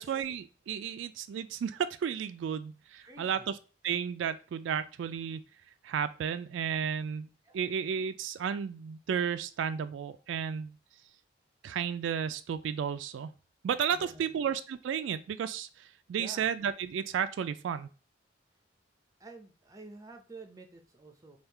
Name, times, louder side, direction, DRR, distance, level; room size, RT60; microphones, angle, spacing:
voice 1, 0.0-3.4 3.8-5.4 5.8-7.3 7.5-10.7 11.6-13.3 13.6-17.9, right 7 dB, 85° right, 11 dB, 0.3 m, -33 dB
voice 2, 3.0-3.5 7.4-7.7 13.9-14.4 16.1-16.5 19.2-21.4, right 3 dB, 20° right, 4 dB, 0.5 m, -50 dB
3.5 x 2.3 x 4.4 m, 0.35 s
head